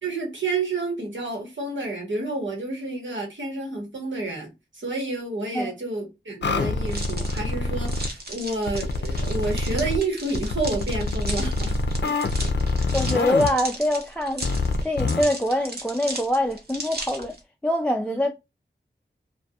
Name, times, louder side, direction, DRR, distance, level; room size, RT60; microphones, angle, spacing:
voice 1, 0.0-11.8 12.4-12.5 18.0-18.2, right 3 dB, 85° right, 1.1 m, -30 dB
sound 1, 6.4-8.1 8.7-10.0 10.3-13.5 14.4-15.2, left 3 dB, 70° left, 0.4 m, -26 dB
sound 2, 6.9-17.4, right 2 dB, 55° right, 0.8 m, -37 dB
voice 2, 12.9-14.5 14.8-17.3 17.6-18.3, left 1 dB, 5° left, 0.3 m, -24 dB
2.3 x 2.3 x 2.6 m
wide cardioid pair, 50°, 19 cm